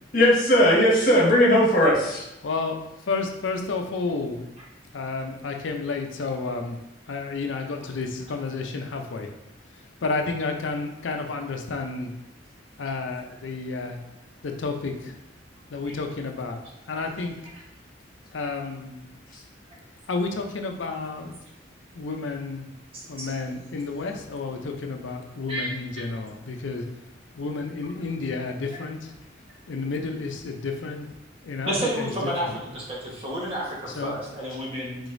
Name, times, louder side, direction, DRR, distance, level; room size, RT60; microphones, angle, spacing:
voice 1, 0.1-2.2, equal, 50° left, -4 dB, 1.3 m, -18 dB
voice 2, 2.4-2.8 3.1-4.4 4.9-6.8 7.1-9.3 10.0-12.1 12.8-14.0 14.4-15.2 15.7-16.6 16.9-17.4 18.3-19.1 20.1-21.4 21.9-22.7 23.1-26.8 27.4-29.1 29.7-31.1 31.4-32.6 33.9-34.1, left 3 dB, 85° left, 3 dB, 0.5 m, -31 dB
voice 3, 22.9-23.3 25.5-25.7 26.0-26.1 28.6-28.8 31.6-32.5 32.7-35.0, equal, 30° right, -5 dB, 1.2 m, -30 dB
4.9 x 3.8 x 2.6 m, 0.88 s
head